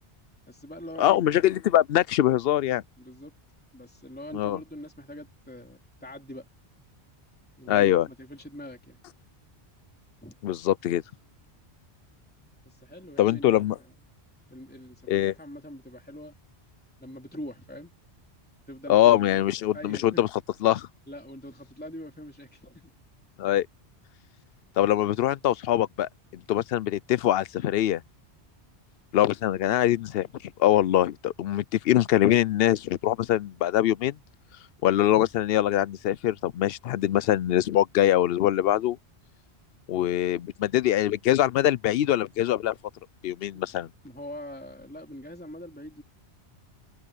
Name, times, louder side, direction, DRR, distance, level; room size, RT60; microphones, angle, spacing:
voice 1, 0.4-1.2 3.0-3.3 3.7-6.5 7.6-9.0 10.2-10.4 12.6-13.7 14.5-16.3 17.0-17.9 18.7-19.4 19.7-20.2 21.1-22.9 39.9-40.1 43.5-43.7 44.0-46.0, left 1 dB, 10° left, 3.2 m, -43 dB
voice 2, 1.0-2.8 4.3-4.6 7.7-8.1 10.4-11.0 13.2-13.8 15.1-15.3 18.9-20.3 20.6-20.9 23.4-23.7 24.8-28.0 29.1-30.3 30.6-34.2 34.8-39.0 39.9-42.7 43.2-43.9, left 12 dB, 65° left, 0.7 m, -23 dB
omnidirectional pair, 1.1 m